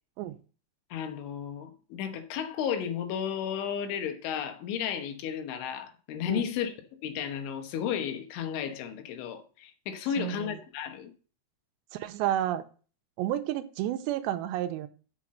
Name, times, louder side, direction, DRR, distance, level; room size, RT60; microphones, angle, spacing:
voice 1, 0.9-6.7 7.0-11.1, left 8 dB, 90° left, 3.6 m, -33 dB
voice 2, 10.2-10.6 11.9-12.6 13.2-14.9, right 12 dB, 85° right, 2.7 m, -31 dB
7.2 x 5.9 x 7.5 m
omnidirectional pair, 5.3 m